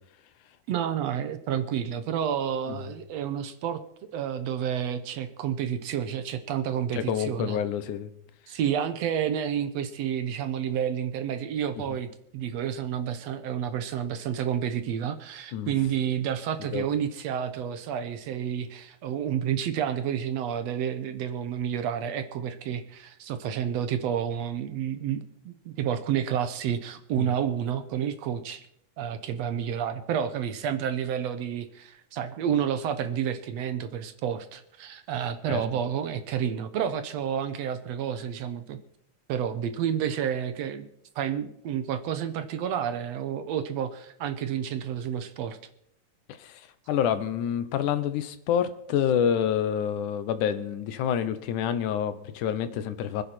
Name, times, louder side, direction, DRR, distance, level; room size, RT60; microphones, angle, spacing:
voice 1, 0.7-3.8 4.1-7.6 8.5-12.1 12.3-28.7 29.0-38.8 39.3-40.9 41.2-45.6, right 9 dB, 70° right, 11 dB, 1.8 m, -30 dB
voice 2, 6.9-8.1 15.5-15.7 16.7-16.8 27.2-27.3 35.5-35.6 46.4-46.6 46.9-53.2, left 9 dB, 85° left, 12 dB, 2.5 m, -27 dB
25.0 x 10.0 x 4.4 m, 0.74 s
omnidirectional pair, 3.5 m